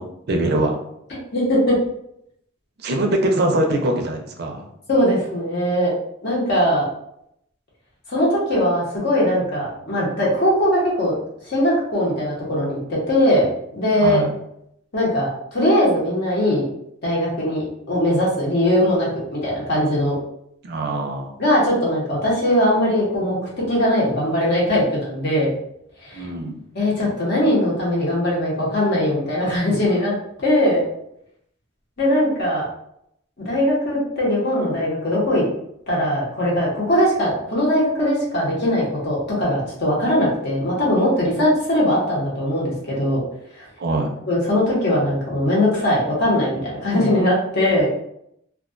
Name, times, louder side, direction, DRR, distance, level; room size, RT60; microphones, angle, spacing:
voice 1, 0.3-0.8 2.8-4.7 14.0-14.3 20.6-21.4 26.1-26.6 43.8-44.1, right 1 dB, 55° right, 3 dB, 0.4 m, -22 dB
voice 2, 1.3-1.7 4.9-5.9 6.2-6.8 8.1-11.2 11.4-13.5 13.7-14.2 14.9-16.6 17.0-17.6 17.9-20.1 21.4-23.4 23.7-25.5 26.0-26.3 26.7-30.1 30.4-30.8 32.0-32.7 33.4-35.4 35.9-43.2 43.6-43.7 44.3-47.9, left 1 dB, 55° left, -5 dB, 0.8 m, -20 dB
2.3 x 2.2 x 2.4 m, 0.75 s
head